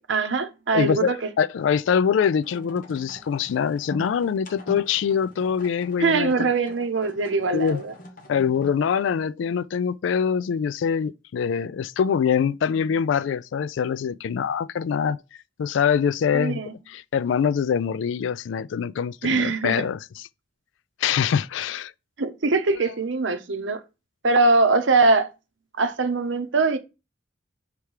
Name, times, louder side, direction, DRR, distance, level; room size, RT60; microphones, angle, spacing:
voice 1, 0.0-1.3 6.0-7.9 16.3-16.7 19.2-19.8 22.2-23.8 24.2-25.3 25.8-26.8, right 3 dB, 75° right, 0.8 m, -22 dB
voice 2, 0.7-6.5 7.5-7.8 8.3-15.2 15.6-16.6 16.9-20.0 21.0-21.9, left 7 dB, 75° left, 0.3 m, -24 dB
sound 1, 2.4-8.9, equal, 45° left, 1.1 m, -43 dB
5.7 x 3.4 x 4.7 m
head